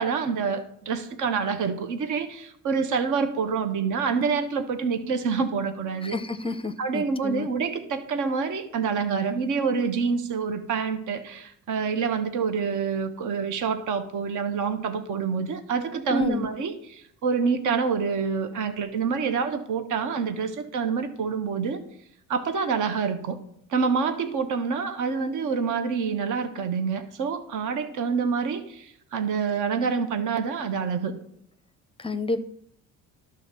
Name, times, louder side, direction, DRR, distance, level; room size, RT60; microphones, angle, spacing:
voice 1, 0.0-6.2 6.8-21.8 22.3-23.4 23.7-31.2, right 5 dB, 60° right, 9 dB, 1.0 m, -27 dB
voice 2, 6.0-7.5 16.1-16.5 32.0-32.4, left 2 dB, 15° left, 11 dB, 0.6 m, -29 dB
11.5 x 3.9 x 6.7 m, 0.71 s
supercardioid pair, 90°, 35 cm